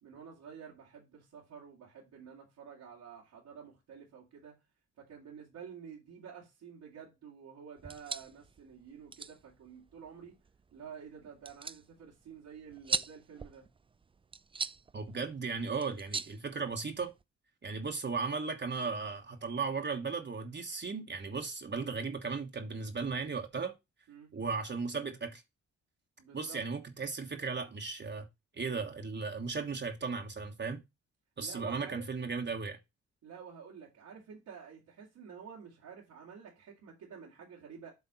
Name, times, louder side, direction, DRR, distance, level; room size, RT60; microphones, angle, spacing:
voice 1, 0.0-4.5 5.0-10.4 10.7-13.7 24.1-24.3 26.2-26.6 31.4-32.1 33.2-37.9, right 7 dB, 90° right, 2.4 m, -50 dB
sound 1, 7.8-17.2, right 5 dB, 20° right, 0.3 m, -42 dB
voice 2, 14.9-17.1 17.6-23.7 24.3-25.4 26.3-28.3 28.5-30.8 31.4-32.8, right 4 dB, 40° right, 1.3 m, -36 dB
8.1 x 3.5 x 5.5 m
cardioid pair, 80°, 29 cm